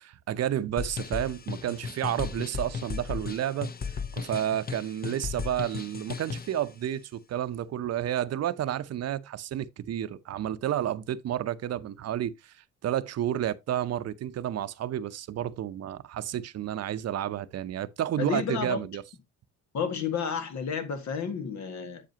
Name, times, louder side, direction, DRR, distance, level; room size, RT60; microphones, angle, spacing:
voice 1, 0.0-3.7 4.1-12.5 12.8-19.0, right 11 dB, 55° right, 0.7 m, -31 dB
sound 1, 0.8-6.6, left 6 dB, 30° left, 0.7 m, -36 dB
voice 2, 18.2-18.8 19.7-22.0, left 6 dB, 65° left, 1.8 m, -31 dB
8.4 x 7.5 x 2.8 m
cardioid pair, 90°, 30 cm